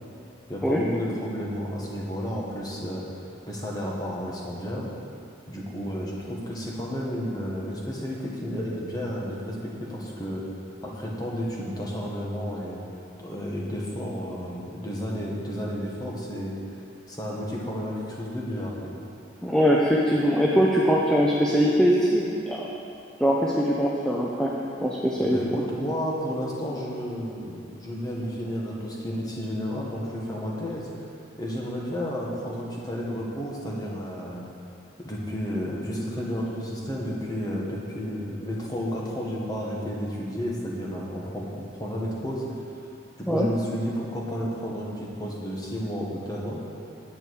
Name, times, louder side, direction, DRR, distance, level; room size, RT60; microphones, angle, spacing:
voice 1, 0.5-3.0 3.5-4.9 5.5-10.4 10.8-12.8 13.2-16.5 17.1-18.9 25.2-31.1 31.4-34.5 35.0-42.4 43.2-46.6, equal, 20° left, -3 dB, 1.4 m, -32 dB
voice 2, 19.4-22.7 23.2-25.4 43.3-43.5, equal, 5° left, -4 dB, 0.6 m, -22 dB
10.0 x 8.6 x 4.7 m, 2.6 s
head